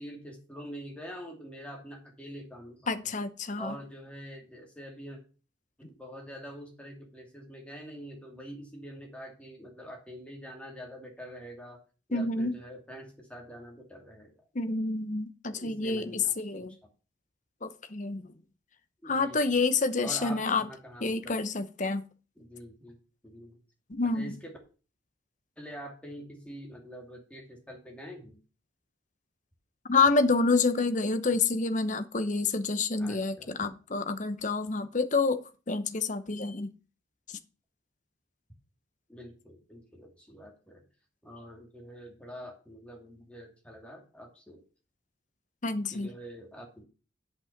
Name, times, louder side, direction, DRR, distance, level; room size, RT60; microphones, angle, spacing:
voice 1, 0.0-3.1 3.6-5.2 5.8-11.8 12.1-14.3 15.5-16.3 16.6-16.9 19.0-19.6 20.0-21.4 22.4-23.0 23.2-23.6 24.1-24.5 25.6-28.4 33.0-33.5 39.1-40.8 41.2-44.6 45.9-46.9, equal, 5° left, 2.6 m, -45 dB
voice 2, 2.9-3.7 12.1-12.6 14.5-16.7 17.6-18.3 19.1-20.6 21.0-22.0 23.9-24.3 29.9-36.7 45.6-46.1, left 3 dB, 40° left, 0.8 m, -28 dB
8.3 x 5.6 x 7.2 m
head